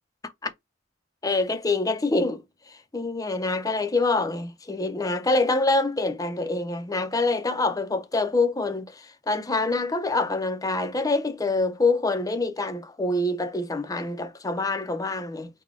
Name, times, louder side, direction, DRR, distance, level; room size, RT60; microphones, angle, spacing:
voice 1, 1.2-2.4 2.7-15.5, left 3 dB, 15° left, 0.5 m, -26 dB
4.0 x 2.2 x 4.5 m
head